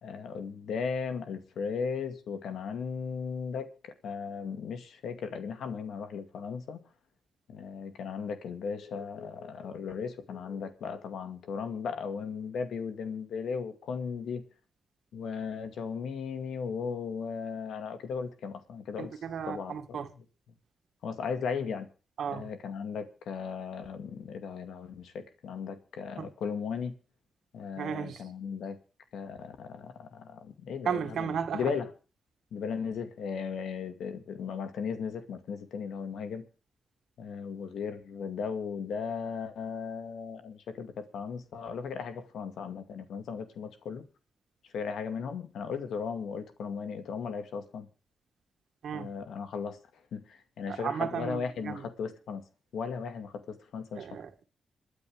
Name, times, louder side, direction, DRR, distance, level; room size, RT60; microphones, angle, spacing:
voice 1, 0.0-6.8 7.5-14.4 15.1-19.2 19.5-19.8 21.0-21.9 22.3-27.0 27.5-28.8 29.1-31.9 32.5-36.4 37.2-44.0 44.7-47.9 48.9-49.8 50.1-52.4 52.7-54.1, left 6 dB, 85° left, 2.1 m, -36 dB
voice 2, 19.0-20.1 22.2-22.5 26.2-26.3 27.8-28.2 30.9-31.6 48.8-49.1 50.7-51.9 54.0-54.4, right 7 dB, 75° right, 2.1 m, -34 dB
27.0 x 9.7 x 3.6 m
cardioid pair, 80°, 0 cm